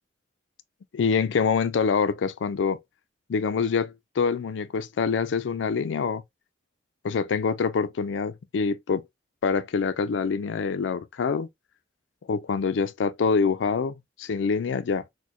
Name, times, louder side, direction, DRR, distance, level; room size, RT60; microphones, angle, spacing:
voice 1, 0.9-2.8 3.3-6.2 7.0-9.0 9.4-11.5 12.3-15.0, left 5 dB, 80° left, 0.4 m, -25 dB
4.3 x 2.1 x 2.9 m
head